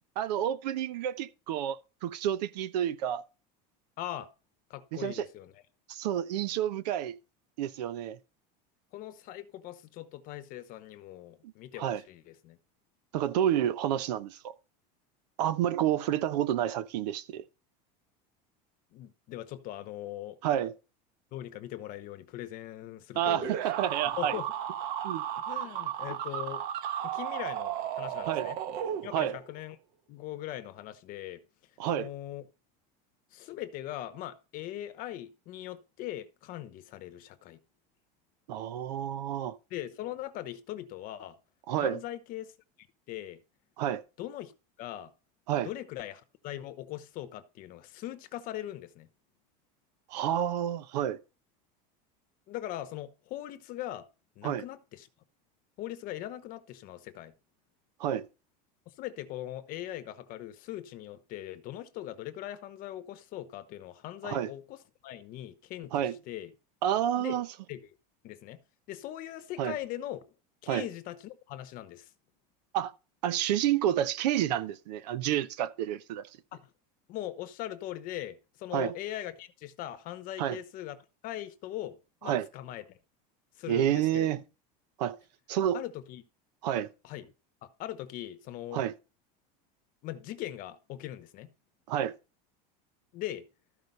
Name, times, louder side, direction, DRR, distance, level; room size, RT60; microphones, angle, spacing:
voice 1, 0.2-3.2 4.9-5.3 5.9-7.2 7.6-8.2 11.8-12.0 13.1-14.5 15.4-17.4 20.4-20.7 23.1-24.4 25.0-25.3 28.3-28.5 29.1-29.4 31.8-32.1 38.5-39.6 41.7-42.0 43.8-44.0 45.5-45.7 50.1-51.2 54.4-54.6 58.0-58.3 64.2-64.5 65.9-66.2 66.8-67.5 69.6-69.7 70.7-70.9 72.7-72.9 73.2-76.3 78.7-78.9 80.4-80.6 82.2-82.5 83.7-84.4 85.0-85.2 85.5-85.8 86.6-86.9 88.7-88.9 91.9-92.2, right 11 dB, 85° right, 1.0 m, -29 dB
voice 2, 4.0-4.3 4.7-5.6 8.9-12.6 18.9-20.4 21.3-23.5 24.2-24.5 25.5-26.6 27.0-28.6 29.0-29.8 30.1-31.4 31.9-32.4 33.3-37.6 39.7-41.4 41.8-42.5 43.1-43.4 44.2-44.5 44.8-45.1 45.6-49.1 52.5-54.1 54.4-55.1 55.8-57.3 58.9-66.5 67.2-67.4 67.7-67.9 68.2-68.6 68.9-70.2 70.6-72.1 76.5-76.7 77.1-81.0 81.2-82.0 82.2-83.0 83.6-84.3 85.7-86.2 87.0-87.3 87.6-88.8 90.0-91.5 93.1-93.5, left 13 dB, 45° left, 0.9 m, -40 dB
sound 1, 23.4-29.5, right 10 dB, 50° right, 1.3 m, -34 dB
13.5 x 5.0 x 5.4 m
supercardioid pair, 150°, 20 cm